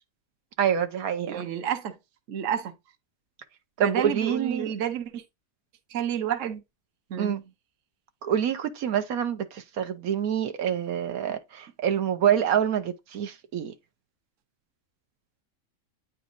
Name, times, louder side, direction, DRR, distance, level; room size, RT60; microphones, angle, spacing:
voice 1, 0.6-1.4 3.8-4.7 7.2-7.4 8.2-13.7, right 9 dB, 90° right, 1.4 m, -26 dB
voice 2, 1.3-1.9 2.3-2.7 3.8-5.2 5.9-6.6 7.1-7.4, right 9 dB, 65° right, 1.2 m, -30 dB
9.3 x 4.1 x 2.6 m
omnidirectional pair, 1.5 m